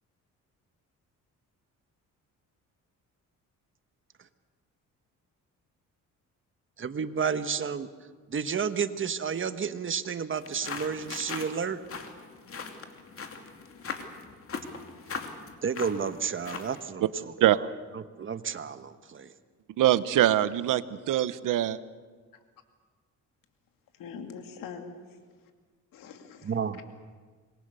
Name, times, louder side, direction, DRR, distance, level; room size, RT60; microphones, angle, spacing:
voice 1, 6.8-7.9 8.3-11.8 15.6-17.0 18.2-19.3 26.4-26.8, right 6 dB, 40° right, 1.3 m, -31 dB
sound 1, 10.4-16.8, left 5 dB, 45° left, 2.7 m, -40 dB
voice 2, 19.8-21.8, right 12 dB, 75° right, 1.0 m, -23 dB
voice 3, 24.0-25.3 25.9-26.8, left 6 dB, 85° left, 2.6 m, -44 dB
26.0 x 22.0 x 6.8 m
cardioid pair, 105°, 32 cm